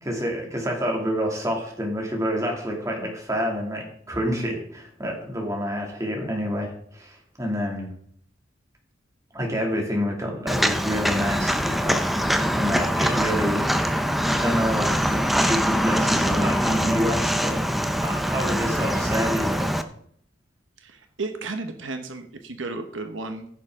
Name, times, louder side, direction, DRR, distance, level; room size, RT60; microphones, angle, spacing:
voice 1, 0.0-7.9 9.3-13.7 14.3-17.7 18.0-19.8, equal, 15° right, 0 dB, 2.4 m, -28 dB
Walk footsteps, 10.5-19.8, equal, ahead, 0.6 m, -23 dB
voice 2, 20.8-23.5, right 3 dB, 85° right, 7 dB, 1.1 m, -33 dB
15.5 x 6.8 x 3.7 m, 0.65 s
head